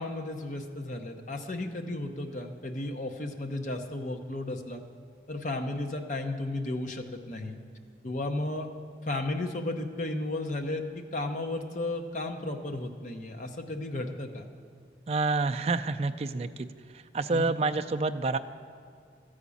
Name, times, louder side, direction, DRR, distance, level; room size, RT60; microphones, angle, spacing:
voice 1, 0.0-4.8 5.3-7.6 8.0-8.7 9.0-14.4 17.3-17.5, left 2 dB, 45° left, 5 dB, 0.8 m, -34 dB
voice 2, 15.1-16.7 17.1-18.4, right 3 dB, 35° right, 8 dB, 0.3 m, -28 dB
13.0 x 5.0 x 8.4 m, 2.3 s
head